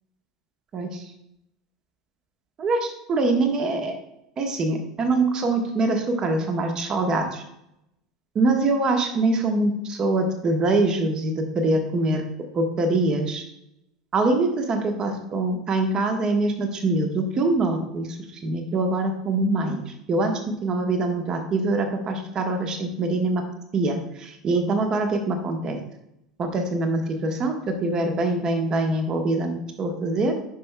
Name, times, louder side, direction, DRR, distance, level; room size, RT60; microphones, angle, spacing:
voice 1, 2.6-3.9 4.4-7.4 8.3-12.3 12.5-13.4 14.1-18.2 18.4-23.4 23.7-25.8 26.4-30.4, right 2 dB, 35° right, 5 dB, 1.1 m, -24 dB
10.0 x 5.4 x 2.2 m, 0.82 s
figure-of-eight pair, 75°, 2 cm